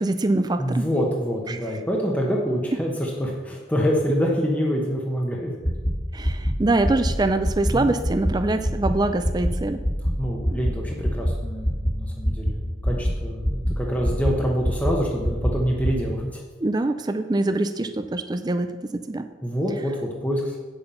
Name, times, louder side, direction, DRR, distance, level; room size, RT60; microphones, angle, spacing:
voice 1, 0.0-0.9 1.5-1.6 6.1-9.8 16.6-19.3, right 2 dB, 20° right, 9 dB, 0.4 m, -24 dB
voice 2, 0.6-5.5 7.7-7.9 10.2-16.4 19.4-20.6, equal, 10° left, -2 dB, 1.0 m, -26 dB
sound 1, 5.6-5.9 6.2-6.5 6.8-7.1 7.4-7.7 8.0-8.3 8.6-8.9 9.2-9.5 9.8-10.1 10.4-10.7 11.0-11.3 11.6-11.9 12.2-12.5 12.8-13.1 13.4-13.7 14.0-14.3 14.6-14.9 15.2-15.5 15.8-15.9, equal, 40° left, 1.8 m, -22 dB
8.7 x 7.1 x 5.5 m, 1.3 s
head